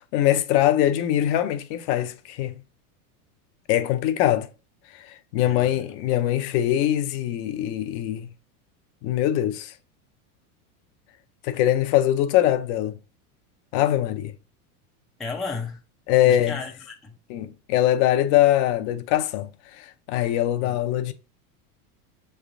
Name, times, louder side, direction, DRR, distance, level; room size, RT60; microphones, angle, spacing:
voice 1, 0.0-2.5 3.7-4.5 5.1-8.3 9.0-9.7 11.4-13.0 13.7-14.3 16.1-16.6 17.3-19.5 19.8-21.1, left 12 dB, 50° left, 0.6 m, -22 dB
voice 2, 5.4-6.0 15.2-15.8 16.2-17.2 20.6-20.8, left 4 dB, ahead, 0.4 m, -34 dB
6.3 x 3.3 x 2.5 m
supercardioid pair, 125°, 44 cm